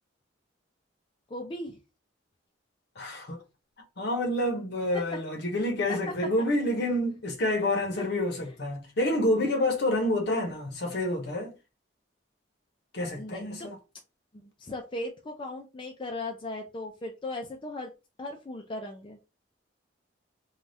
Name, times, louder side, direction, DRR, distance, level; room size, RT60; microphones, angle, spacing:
voice 1, 1.3-1.8 4.9-5.2 5.9-6.0 8.0-8.6 13.1-13.7 14.4-17.9 18.2-19.2, left 2 dB, 25° left, 0.4 m, -38 dB
voice 2, 3.0-3.4 4.0-11.5 12.9-13.8, left 1 dB, 60° left, 0.8 m, -28 dB
3.3 x 2.3 x 2.6 m
head